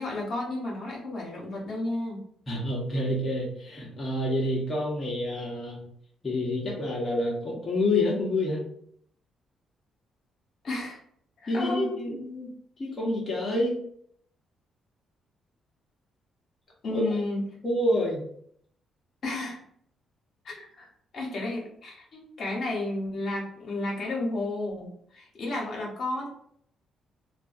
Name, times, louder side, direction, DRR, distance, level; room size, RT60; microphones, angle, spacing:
voice 1, 0.0-2.3 10.6-11.0 11.4-12.1 16.8-17.5 19.2-19.6 20.4-26.3, left 2 dB, 55° left, -2 dB, 1.0 m, -32 dB
voice 2, 2.5-5.8 6.2-8.6 11.5-12.5 12.8-13.8 16.9-17.0 17.6-18.2, left 1 dB, 30° left, -5 dB, 0.9 m, -28 dB
2.5 x 2.3 x 2.5 m, 0.65 s
cardioid pair, 90°, 0 cm